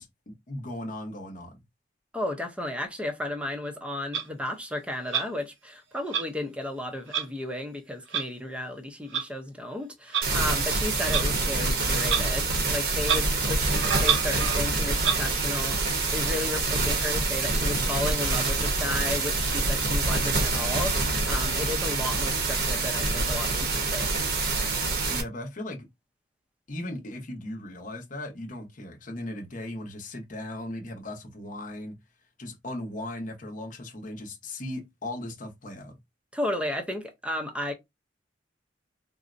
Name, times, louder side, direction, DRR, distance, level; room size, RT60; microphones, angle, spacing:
voice 1, 0.0-1.5 25.1-25.8 26.7-31.9 32.4-35.9, left 1 dB, 45° left, 0.8 m, -37 dB
voice 2, 2.1-24.3 36.3-37.7, left 1 dB, 5° right, 0.6 m, -34 dB
Clock, 4.1-4.2 5.1-5.3 6.1-6.2 7.1-7.3 8.1-8.2 9.1-9.2 10.1-10.3 11.1-11.3 12.0-12.2 12.5-12.6 13.0-13.2 13.7-14.6 15.0-15.2, right 8 dB, 85° right, 0.7 m, -27 dB
sound 1, 10.2-25.2, right 3 dB, 55° right, 0.8 m, -26 dB
3.8 x 2.1 x 2.5 m
head